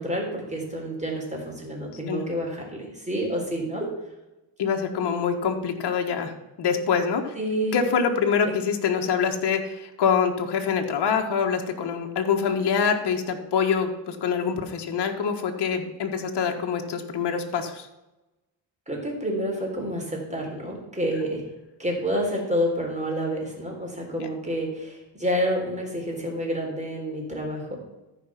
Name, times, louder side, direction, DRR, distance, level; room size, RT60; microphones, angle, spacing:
voice 1, 0.0-3.9 7.4-7.8 18.9-21.4 21.8-27.8, equal, 15° right, 0 dB, 3.7 m, -29 dB
voice 2, 4.6-6.3 6.6-7.3 7.7-17.9 24.2-24.3, left 6 dB, 60° left, 3 dB, 1.5 m, -25 dB
13.5 x 5.2 x 5.8 m, 1.0 s
cardioid pair, 105°, 46 cm